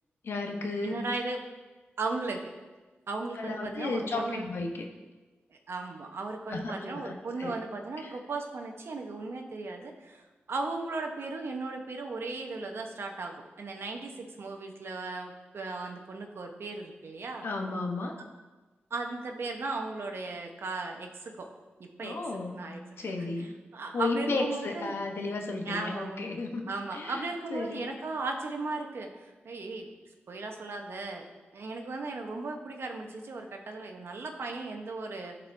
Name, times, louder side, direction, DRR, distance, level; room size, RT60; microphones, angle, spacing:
voice 1, 0.2-0.9 3.4-4.9 6.5-7.5 8.0-8.1 17.4-18.1 22.0-22.7 23.0-23.5 23.9-27.9, left 3 dB, 70° left, 3 dB, 1.0 m, -34 dB
voice 2, 0.8-1.4 2.0-2.5 3.1-4.5 5.5-17.4 18.9-21.5 21.8-22.2 22.5-23.1 23.7-24.9 25.6-26.2 26.7-29.9 30.3-31.3 31.5-35.3, right 3 dB, 65° right, 3 dB, 0.9 m, -36 dB
13.0 x 4.5 x 2.7 m, 1.3 s
cardioid pair, 60°, 4 cm